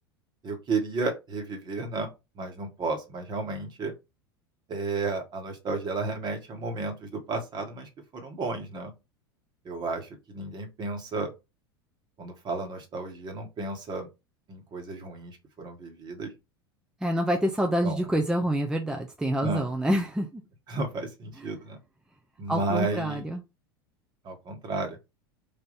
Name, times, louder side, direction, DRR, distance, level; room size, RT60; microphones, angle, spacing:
voice 1, 0.4-2.1 2.3-3.9 4.7-8.9 9.6-11.3 12.2-14.1 14.5-16.3 17.8-18.1 19.4-19.7 20.7-21.8 22.4-23.2 24.2-25.0, right 3 dB, 35° right, 1.4 m, -33 dB
voice 2, 17.0-20.4 22.5-23.4, equal, 5° right, 0.5 m, -27 dB
3.5 x 2.6 x 4.0 m
hypercardioid pair, 85°, 13 cm